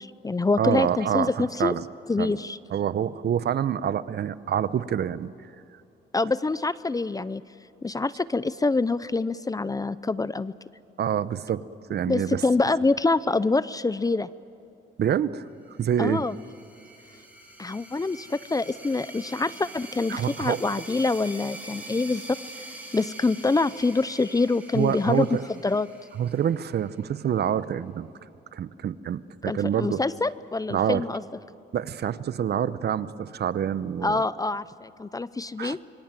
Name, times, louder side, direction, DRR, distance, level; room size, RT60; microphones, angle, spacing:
voice 1, 0.0-1.7 2.1-2.6 6.1-7.4 7.8-10.5 12.0-14.3 16.0-16.3 17.6-22.4 22.9-25.9 29.5-31.2 34.0-35.8, left 3 dB, 20° left, 17 dB, 0.6 m, -26 dB
voice 2, 0.6-1.9 2.2-2.3 2.7-5.3 11.0-11.6 11.9-12.4 15.0-15.4 15.8-16.3 20.1-20.7 24.7-25.5 26.2-28.1 28.5-30.0 30.7-31.0 31.7-34.2 35.6-35.8, right 9 dB, 55° right, 15 dB, 0.8 m, -26 dB
sound 1, 15.8-27.1, right 1 dB, 10° right, 5.4 m, -45 dB
26.5 x 24.0 x 7.6 m, 2.8 s
cardioid pair, 90°, 20 cm